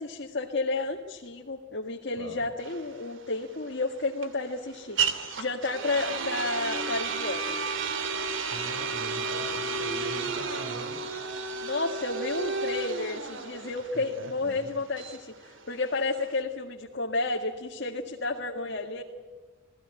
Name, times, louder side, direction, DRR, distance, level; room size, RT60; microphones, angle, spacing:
voice 1, 0.0-7.6 11.6-19.0, left 3 dB, 55° left, 0 dB, 1.8 m, -31 dB
voice 2, 2.2-2.5 8.5-11.0 13.9-14.7, right 1 dB, 85° right, 9 dB, 3.8 m, -42 dB
sound 1, 2.6-16.4, right 4 dB, 65° right, 2.5 m, -32 dB
28.0 x 18.5 x 8.9 m, 1.4 s
head